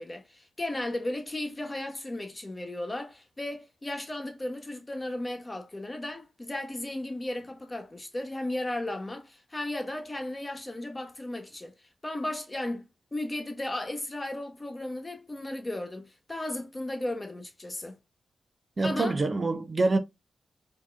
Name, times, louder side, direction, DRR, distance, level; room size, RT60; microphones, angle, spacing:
voice 1, 0.0-11.7 12.0-18.0 18.8-19.2, left 1 dB, 25° left, 1.1 m, -35 dB
voice 2, 18.8-20.0, right 3 dB, 45° right, 0.5 m, -25 dB
4.6 x 2.9 x 2.3 m
supercardioid pair, 45°, 0 cm